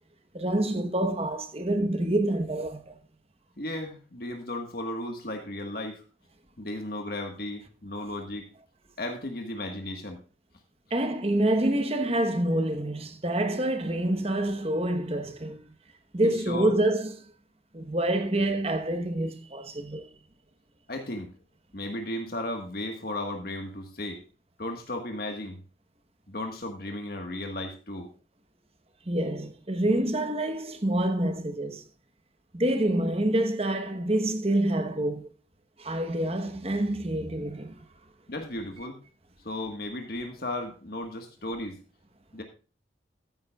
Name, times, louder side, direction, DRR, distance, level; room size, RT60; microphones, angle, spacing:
voice 1, 0.3-3.0 10.9-15.6 16.1-17.2 17.7-20.1 29.1-31.8 32.5-35.3 35.8-37.8, right 1 dB, 30° right, 1.1 m, -27 dB
voice 2, 3.6-6.0 6.6-8.5 9.0-10.2 16.2-16.7 20.9-21.3 21.7-24.2 24.6-25.6 26.3-28.1 38.3-39.0 39.4-41.8 42.3-42.4, left 1 dB, 55° left, 1.5 m, -35 dB
13.5 x 9.5 x 2.4 m
head